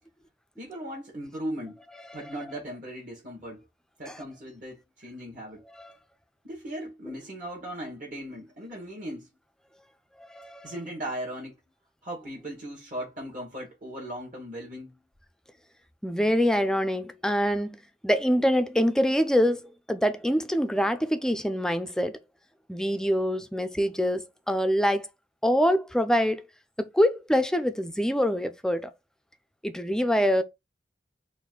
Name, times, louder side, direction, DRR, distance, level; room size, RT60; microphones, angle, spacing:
voice 1, 0.6-1.8 2.1-3.6 4.0-5.6 6.4-9.3 10.6-11.6 12.0-15.0, right 1 dB, 50° right, 1.7 m, -38 dB
voice 2, 10.3-10.7 16.0-19.6 19.9-22.2 22.7-25.1 25.4-26.5 26.8-28.9 29.6-30.4, equal, 5° left, 0.5 m, -25 dB
4.2 x 2.6 x 3.8 m
head